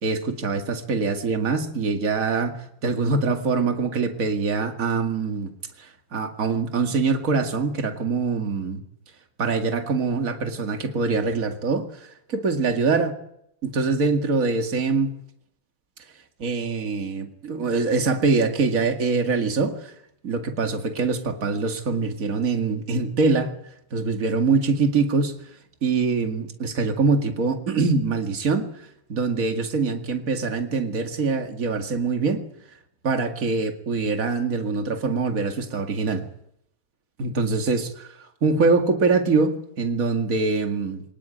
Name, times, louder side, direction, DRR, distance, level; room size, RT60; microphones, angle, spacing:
voice 1, 0.0-5.5 5.8-8.8 9.4-13.1 13.6-15.1 16.4-19.9 20.2-23.5 23.9-25.4 25.8-28.7 29.1-32.4 33.0-36.3 37.2-38.1 38.4-41.0, right 4 dB, 40° right, 5 dB, 2.5 m, -24 dB
23.5 x 19.0 x 9.2 m, 0.76 s
omnidirectional pair, 2.4 m